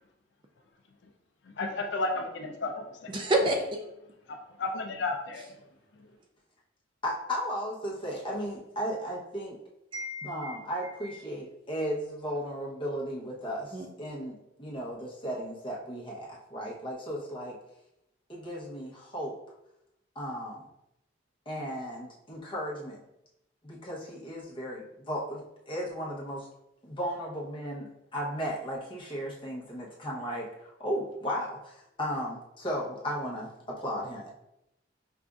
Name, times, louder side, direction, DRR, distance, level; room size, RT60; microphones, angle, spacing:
voice 1, 1.5-3.1 4.3-5.4, left 2 dB, 65° left, 4 dB, 0.4 m, -33 dB
voice 2, 3.1-3.8 9.9-10.6 13.7-13.9, right 1 dB, 25° right, 2 dB, 0.3 m, -28 dB
voice 3, 7.0-9.6 10.2-17.6 18.3-19.4 20.1-20.7 21.5-23.0 23.6-26.5 26.8-27.9 28.1-34.3, equal, 25° left, -4 dB, 0.8 m, -35 dB
5.0 x 2.5 x 2.3 m, 0.87 s
head